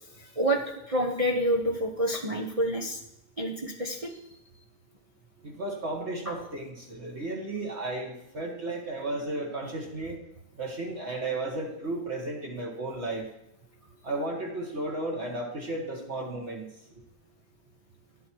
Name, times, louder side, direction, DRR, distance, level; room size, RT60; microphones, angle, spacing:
voice 1, 0.2-3.0 3.4-4.2 6.3-6.4, right 1 dB, 25° right, 1 dB, 0.9 m, -28 dB
voice 2, 5.4-10.2 10.6-13.3 14.0-16.7, right 2 dB, 45° right, -1 dB, 1.9 m, -34 dB
11.5 x 8.0 x 4.6 m, 0.82 s
omnidirectional pair, 1.6 m